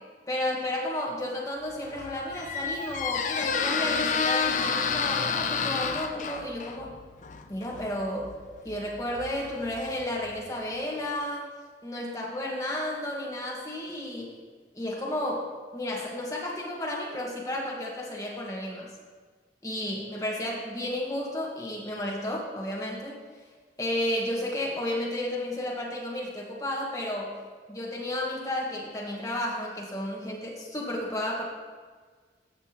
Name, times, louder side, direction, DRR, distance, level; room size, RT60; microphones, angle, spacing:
voice 1, 0.3-6.9 7.5-8.3 8.6-11.5 11.8-14.3 14.7-18.9 19.6-23.2 23.8-27.3 27.7-31.4, left 1 dB, 20° left, -3 dB, 1.5 m, -32 dB
Squeak, 1.7-10.5, left 5 dB, 45° left, 0.4 m, -30 dB
14.5 x 5.9 x 3.0 m, 1.5 s
head